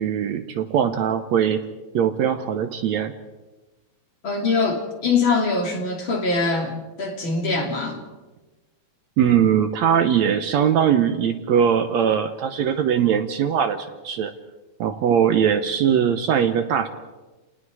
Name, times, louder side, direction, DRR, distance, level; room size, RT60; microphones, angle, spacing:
voice 1, 0.0-1.6 1.9-3.1 9.2-14.3 14.8-16.9, right 8 dB, 70° right, 8 dB, 1.8 m, -21 dB
voice 2, 4.2-8.0, left 4 dB, 35° left, 1 dB, 3.2 m, -23 dB
30.0 x 19.0 x 4.8 m, 1.2 s
omnidirectional pair, 4.1 m